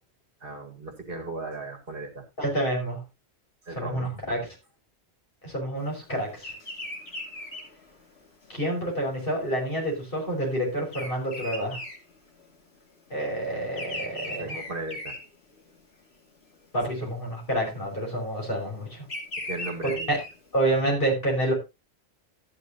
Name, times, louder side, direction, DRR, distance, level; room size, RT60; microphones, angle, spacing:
voice 1, 0.4-2.2 3.7-4.2 14.2-15.1 19.5-20.1, right 2 dB, 55° right, 4 dB, 2.1 m, -36 dB
voice 2, 2.4-3.0 3.7-4.4 5.4-6.5 8.5-11.8 13.1-14.6 16.7-19.1 19.8-20.2 20.5-21.5, right 1 dB, 55° left, -1 dB, 5.9 m, -28 dB
Bird vocalization bird call bird song, 6.4-12.8 13.1-15.9 16.4-16.8 17.7-20.7, left 1 dB, 75° left, 2.7 m, -38 dB
13.0 x 10.0 x 2.8 m, 0.26 s
omnidirectional pair, 1.1 m